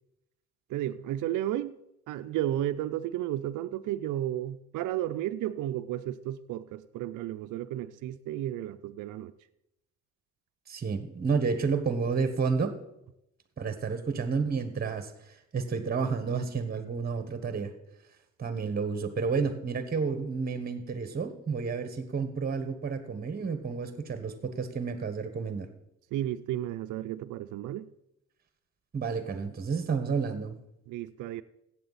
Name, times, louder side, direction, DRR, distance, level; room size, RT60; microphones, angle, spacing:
voice 1, 0.7-1.7 2.1-9.3 26.1-27.9 30.9-31.4, right 13 dB, 80° right, 0.5 m, -33 dB
voice 2, 10.7-12.8 13.6-15.1 15.5-17.7 18.4-25.7 28.9-30.6, right 5 dB, 30° right, 1.3 m, -30 dB
14.5 x 8.7 x 4.1 m
cardioid pair, 90°, 30 cm